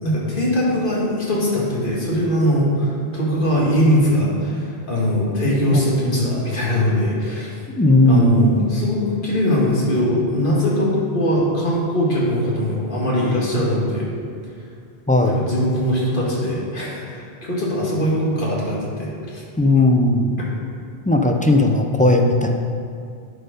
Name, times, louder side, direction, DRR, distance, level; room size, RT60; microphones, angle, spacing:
voice 1, 0.0-7.5 8.1-14.1 15.2-19.4 20.4-20.5, equal, 55° left, -5 dB, 2.1 m, -21 dB
voice 2, 5.7-6.2 7.8-8.7 15.1-15.4 19.6-20.3 21.1-22.5, left 1 dB, 15° left, 2 dB, 0.3 m, -16 dB
10.5 x 4.5 x 5.1 m, 2.3 s
omnidirectional pair, 1.1 m